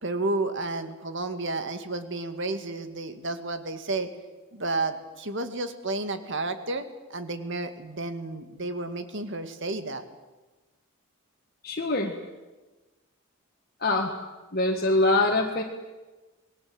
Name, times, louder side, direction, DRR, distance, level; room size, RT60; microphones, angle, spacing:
voice 1, 0.0-4.1 4.5-6.8 7.1-10.1, right 2 dB, 55° right, 9 dB, 2.1 m, -31 dB
voice 2, 11.6-12.1 13.8-14.1 14.5-15.6, left 2 dB, 45° left, 1 dB, 1.9 m, -23 dB
28.0 x 21.0 x 7.9 m, 1.2 s
head